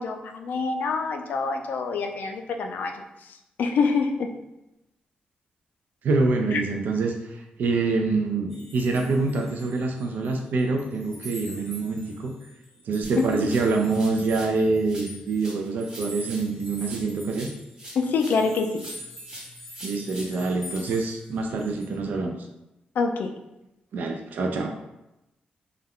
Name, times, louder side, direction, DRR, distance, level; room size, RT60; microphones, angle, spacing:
voice 1, 0.0-4.3 6.5-6.6 13.2-13.3 17.9-18.8 23.0-23.3, left 4 dB, 75° left, 4 dB, 0.3 m, -26 dB
voice 2, 6.0-12.3 12.8-17.5 19.8-22.3 23.9-24.7, right 3 dB, 70° right, 3 dB, 0.3 m, -26 dB
sound 1, 8.5-10.3 10.6-21.9, right 1 dB, 5° right, 0.7 m, -44 dB
sound 2, 13.0-14.6 14.8-18.5 18.8-20.8, right 1 dB, 25° right, 0.9 m, -44 dB
2.3 x 2.1 x 3.5 m, 0.91 s
cardioid pair, 105°, 3 cm